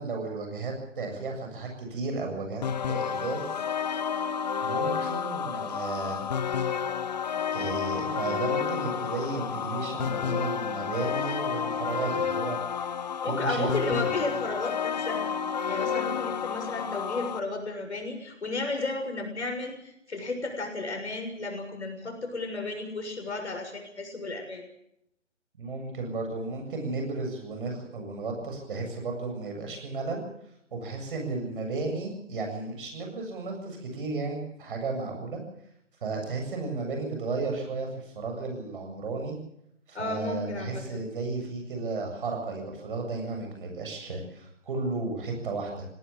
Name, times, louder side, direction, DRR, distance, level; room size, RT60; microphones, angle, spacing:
voice 1, 0.0-3.5 4.6-6.3 7.5-12.6 13.2-14.1 25.6-30.3 30.7-35.4 36.0-39.4 39.9-45.9, right 3 dB, 45° right, 2 dB, 7.6 m, -33 dB
sound 1, 2.6-17.4, left 7 dB, 35° left, 0.9 m, -30 dB
voice 2, 13.2-15.3 15.7-24.6 39.9-41.0, left 2 dB, 65° left, 4 dB, 6.8 m, -33 dB
18.5 x 18.5 x 8.8 m, 0.76 s
figure-of-eight pair, 140°, 37 cm